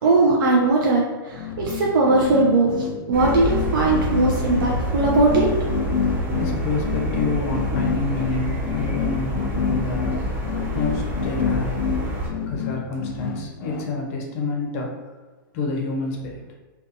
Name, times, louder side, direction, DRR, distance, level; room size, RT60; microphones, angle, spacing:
voice 1, 0.0-5.5, right 2 dB, 70° right, -2 dB, 0.5 m, -19 dB
sound 1, 1.3-13.9, left 7 dB, 90° left, 0.4 m, -28 dB
sound 2, 3.1-12.3, equal, 15° right, 0.4 m, -27 dB
voice 2, 6.3-10.4 10.7-12.0 12.3-15.0 15.5-16.4, left 3 dB, 40° left, 0 dB, 0.5 m, -28 dB
2.4 x 2.3 x 2.6 m, 1.3 s
hypercardioid pair, 160°, 12 cm